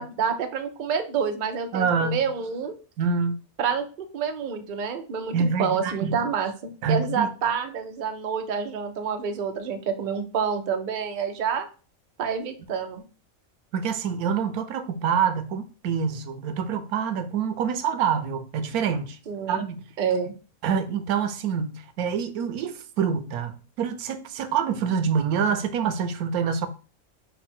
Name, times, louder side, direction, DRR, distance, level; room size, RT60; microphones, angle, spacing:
voice 1, 0.0-2.7 3.6-5.3 5.6-11.7 12.2-13.0 19.3-19.6 20.0-20.3, right 6 dB, 55° right, 0.5 m, -28 dB
voice 2, 1.7-2.2 3.0-3.4 5.3-6.2 6.8-7.3 13.7-19.2 19.5-19.9 20.6-26.7, right 6 dB, 90° right, 1.1 m, -26 dB
5.5 x 2.2 x 4.3 m
omnidirectional pair, 1.5 m